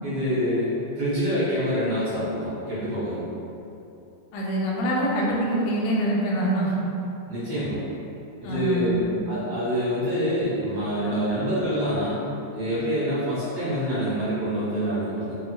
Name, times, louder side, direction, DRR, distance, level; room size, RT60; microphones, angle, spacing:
voice 1, 0.0-3.2 7.3-7.8 8.4-9.0 9.3-12.2 12.5-15.3, equal, 75° right, -12 dB, 1.4 m, -26 dB
voice 2, 4.3-6.7 8.4-9.3, right 1 dB, 85° left, -4 dB, 2.7 m, -25 dB
6.8 x 2.5 x 2.3 m, 2.8 s
omnidirectional pair, 5.2 m